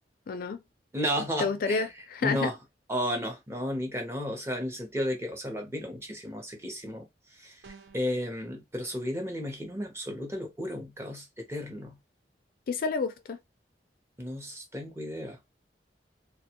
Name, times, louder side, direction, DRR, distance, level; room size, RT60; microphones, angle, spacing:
voice 1, 0.3-0.6 1.4-2.5 12.7-13.4, left 4 dB, 55° left, 0.4 m, -29 dB
voice 2, 0.9-1.9 2.2-2.6 2.9-7.6 7.9-12.0 14.2-15.4, equal, 15° right, 0.7 m, -33 dB
sound 1, 7.6-8.2, right 4 dB, 65° right, 0.5 m, -50 dB
2.3 x 2.2 x 2.8 m
head